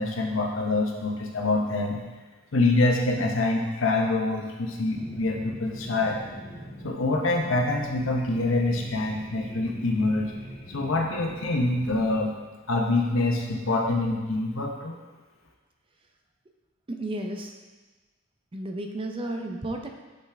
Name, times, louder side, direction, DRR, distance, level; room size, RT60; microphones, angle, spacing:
voice 1, 0.0-2.0 2.5-6.4 6.8-10.3 10.7-12.3 12.7-15.0, left 2 dB, 85° left, 1 dB, 0.9 m, -25 dB
sound 1, 4.9-12.2, equal, 35° left, 2.0 m, -43 dB
voice 2, 16.9-17.5 18.5-19.9, right 1 dB, 25° right, 3 dB, 0.6 m, -32 dB
6.4 x 5.7 x 3.4 m, 1.3 s
head